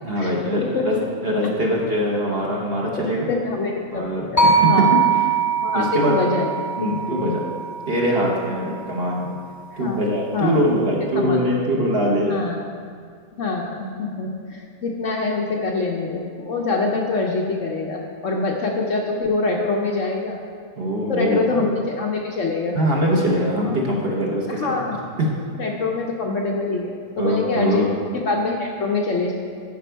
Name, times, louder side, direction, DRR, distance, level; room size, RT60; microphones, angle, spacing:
voice 1, 0.0-0.9 1.2-3.3 3.9-5.0 5.7-6.2 6.8-7.4 7.9-9.3 9.8-12.3 20.8-21.6 22.7-24.7 25.2-25.3 27.2-27.9, equal, 40° right, -2 dB, 1.1 m, -22 dB
voice 2, 0.7-1.0 3.0-4.9 5.6-7.3 9.7-10.0 10.3-10.8 11.1-11.4 12.2-12.6 13.4-20.4 21.1-22.8 24.5-25.1 25.6-27.8 28.1-29.3, left 3 dB, 60° left, 0 dB, 0.9 m, -25 dB
sound 1, 4.4-8.6, right 5 dB, 20° left, 0.5 m, -21 dB
11.0 x 5.1 x 4.5 m, 2.1 s
omnidirectional pair, 1.8 m